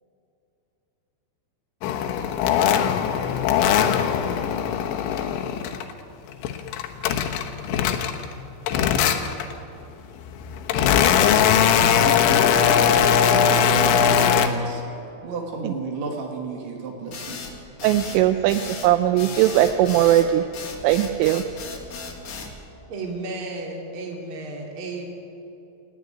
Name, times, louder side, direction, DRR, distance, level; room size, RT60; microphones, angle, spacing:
sound 1, 1.8-5.9 6.3-8.3 8.7-9.5 10.2-14.5, left 8 dB, 75° left, 3.3 m, -20 dB
voice 1, 11.5-14.8 15.2-17.4, right 3 dB, 65° right, 1 dB, 4.7 m, -33 dB
sound 2, 17.1-22.5, left 4 dB, 55° left, 1.7 m, -36 dB
voice 2, 17.8-20.4 20.8-21.4, right 13 dB, 85° right, 9 dB, 3.0 m, -19 dB
voice 3, 22.9-25.0, right 2 dB, 30° right, 0 dB, 2.8 m, -33 dB
28.5 x 11.0 x 9.5 m, 2.8 s
omnidirectional pair, 5.9 m